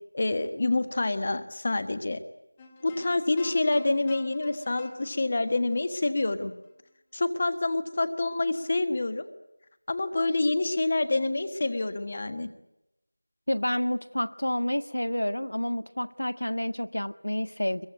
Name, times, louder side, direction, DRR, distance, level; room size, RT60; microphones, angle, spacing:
voice 1, 0.1-2.2 2.8-6.5 7.1-9.3 9.9-12.5, left 2 dB, 25° left, 10 dB, 1.4 m, -27 dB
sound 1, 2.6-6.9, left 3 dB, 10° left, 1.5 m, -51 dB
voice 2, 13.5-17.9, left 1 dB, 80° left, 11 dB, 1.5 m, -29 dB
22.5 x 22.5 x 9.3 m, 0.89 s
figure-of-eight pair, 175°, 0 cm